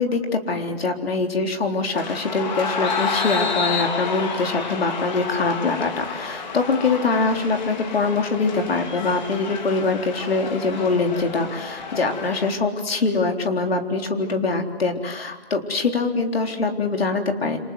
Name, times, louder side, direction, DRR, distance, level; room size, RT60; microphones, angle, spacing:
voice 1, 0.0-17.6, left 3 dB, 70° left, 4 dB, 3.9 m, -23 dB
sound 1, 1.9-12.5, left 5 dB, 45° left, 3.6 m, -30 dB
28.5 x 26.5 x 7.9 m, 1.2 s
hypercardioid pair, 155°, 31 cm